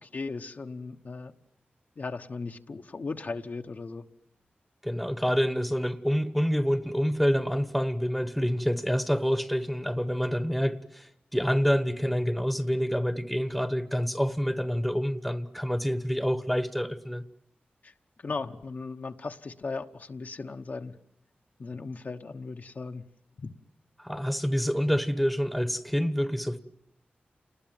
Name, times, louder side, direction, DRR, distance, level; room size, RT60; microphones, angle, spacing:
voice 1, 0.0-1.3 2.0-4.0 17.8-17.9 18.2-20.9 21.6-23.0 23.4-23.5, left 4 dB, 50° left, 1.2 m, -37 dB
voice 2, 4.8-17.2 24.0-26.6, equal, ahead, 1.2 m, -27 dB
29.5 x 20.0 x 9.3 m
wide cardioid pair, 110°, 4 cm